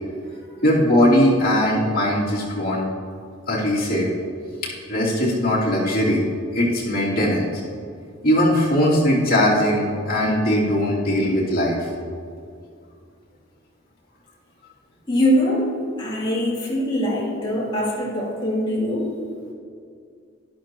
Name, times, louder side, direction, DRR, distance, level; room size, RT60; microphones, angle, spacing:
voice 1, 0.6-2.9 3.5-4.1 4.6-6.2 6.5-7.6 8.2-11.9, equal, 50° left, -7 dB, 2.9 m, -20 dB
voice 2, 15.1-15.7 16.0-19.1, equal, 25° left, -7 dB, 3.0 m, -22 dB
12.0 x 11.5 x 3.0 m, 2.3 s
head